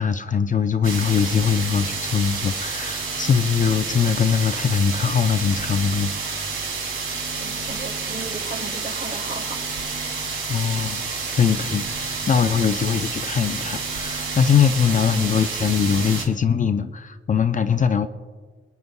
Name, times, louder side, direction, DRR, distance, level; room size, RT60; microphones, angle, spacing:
voice 1, 0.0-6.1 10.5-11.1 11.4-18.1, left 7 dB, 40° left, 10 dB, 0.4 m, -21 dB
sound 1, 0.8-16.2, right 4 dB, 85° right, 2.4 m, -29 dB
voice 2, 7.4-9.7 10.0-10.1 15.1-15.4, right 3 dB, 45° right, 7 dB, 1.3 m, -36 dB
27.0 x 9.4 x 2.2 m, 1.5 s
wide cardioid pair, 155°, 21 cm